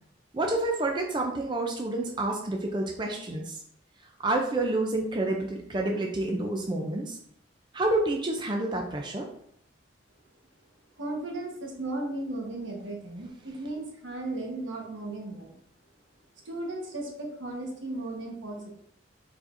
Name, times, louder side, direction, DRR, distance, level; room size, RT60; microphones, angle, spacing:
voice 1, 0.3-3.6 4.2-7.2 7.7-9.3, right 2 dB, 25° right, 2 dB, 0.4 m, -28 dB
voice 2, 11.0-15.6 16.4-18.7, right 2 dB, 80° right, -1 dB, 1.2 m, -35 dB
4.6 x 4.2 x 2.6 m, 0.68 s
head